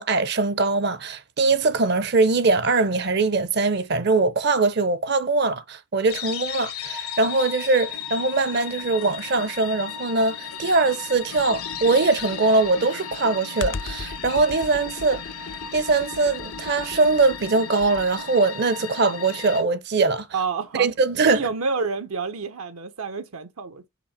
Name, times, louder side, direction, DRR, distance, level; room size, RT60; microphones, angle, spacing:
voice 1, 0.0-15.2 15.7-20.3 20.8-21.4, right 3 dB, 50° right, 0.6 m, -22 dB
sound 1, 6.1-19.6, left 7 dB, 85° left, 1.3 m, -35 dB
Computer keyboard, 11.4-18.2, left 4 dB, 55° left, 0.5 m, -38 dB
voice 2, 20.3-20.9 21.2-23.9, right 4 dB, 80° right, 0.8 m, -28 dB
6.1 x 4.3 x 4.2 m
head